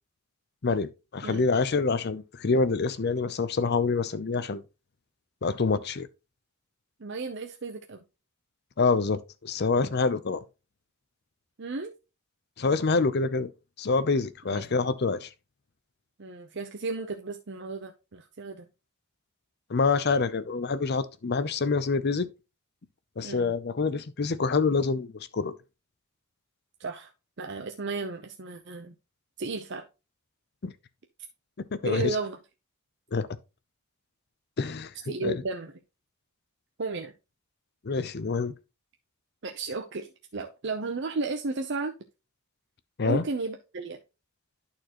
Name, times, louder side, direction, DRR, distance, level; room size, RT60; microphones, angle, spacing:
voice 1, 0.6-4.6 5.4-6.1 8.8-10.4 12.6-13.5 13.8-15.3 19.7-22.3 23.2-25.6 30.6-30.7 31.7-32.0 33.1-33.3 34.6-35.4 37.8-38.5 43.0-43.3, left 4 dB, 50° left, 0.6 m, -26 dB
voice 2, 7.0-8.0 11.6-11.9 14.5-14.6 16.2-18.7 23.2-23.5 26.8-27.1 27.4-28.9 29.4-29.8 31.8-32.4 35.1-35.7 36.8-37.1 39.4-41.9 43.0-44.0, right 3 dB, 55° right, 0.7 m, -34 dB
11.5 x 4.4 x 3.0 m
head